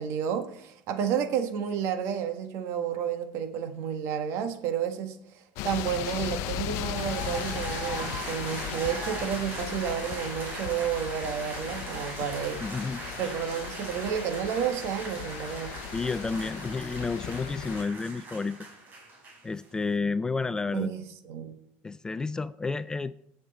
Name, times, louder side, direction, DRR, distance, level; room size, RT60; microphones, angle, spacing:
voice 1, 0.0-12.6 13.2-15.7 20.7-21.5, right 8 dB, 60° right, 8 dB, 1.5 m, -31 dB
sound 1, 5.6-17.8, left 13 dB, 65° left, 0.7 m, -37 dB
sound 2, 7.0-19.7, right 3 dB, 35° right, 4.3 m, -40 dB
voice 2, 12.6-13.0 15.9-18.7 19.4-20.9 21.8-23.2, left 4 dB, 15° left, 15 dB, 0.3 m, -31 dB
17.0 x 6.4 x 4.1 m, 0.73 s
supercardioid pair, 125°, 5 cm